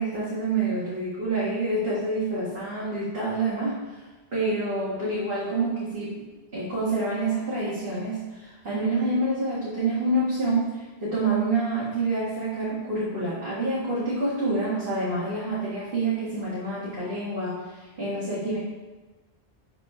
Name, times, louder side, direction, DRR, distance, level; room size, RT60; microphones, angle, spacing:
voice 1, 0.0-4.0 4.3-6.2 6.5-18.6, right 2 dB, 65° right, -9 dB, 2.0 m, -27 dB
6.1 x 4.3 x 5.6 m, 1.3 s
omnidirectional pair, 1.1 m